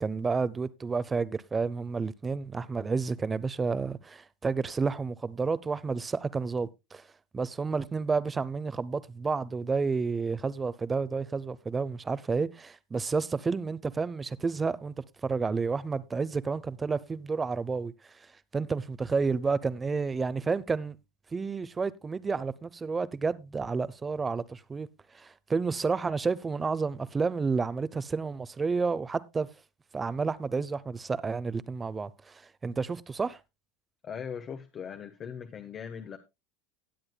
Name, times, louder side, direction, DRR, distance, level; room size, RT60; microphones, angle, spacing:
voice 1, 0.0-7.0 7.3-14.9 15.2-17.9 18.5-21.0 21.3-24.9 25.1-29.5 29.9-33.4, right 4 dB, 20° right, 0.7 m, -30 dB
voice 2, 34.0-36.2, left 7 dB, 35° left, 1.1 m, -39 dB
19.0 x 7.8 x 2.2 m
supercardioid pair, 110°, 0 cm